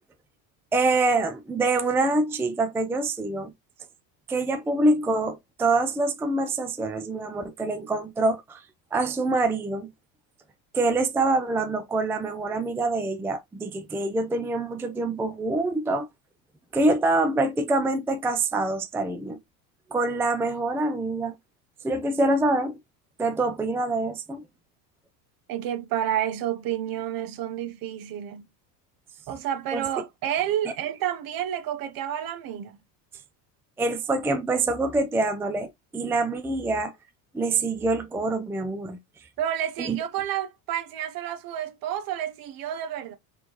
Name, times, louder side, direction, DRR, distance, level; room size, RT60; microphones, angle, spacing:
voice 1, 0.7-3.5 4.3-8.6 8.9-9.9 10.7-16.1 16.7-19.4 19.9-21.3 21.8-22.8 23.2-24.4 29.7-29.8 33.8-36.9 37.3-39.0 39.8-40.0, right 2 dB, 5° right, 0.4 m, -25 dB
voice 2, 25.5-28.5 29.3-32.8 39.4-43.2, right 10 dB, 50° right, 0.9 m, -30 dB
4.2 x 3.3 x 2.9 m
supercardioid pair, 115°, 43 cm